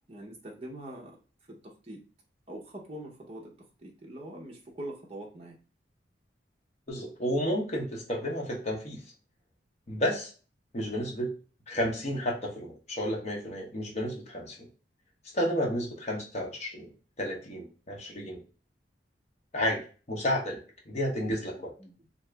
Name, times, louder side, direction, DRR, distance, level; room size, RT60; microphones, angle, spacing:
voice 1, 0.1-1.1 1.8-2.0 2.5-3.5 3.8-5.5 21.6-21.9, right 1 dB, 35° right, -1 dB, 0.8 m, -43 dB
voice 2, 6.9-9.0 9.9-10.3 10.7-11.3 11.7-14.7 15.3-16.9 17.2-18.4 19.5-20.6 20.9-21.7, equal, 40° left, -1 dB, 0.9 m, -31 dB
2.8 x 2.4 x 3.2 m, 0.37 s
head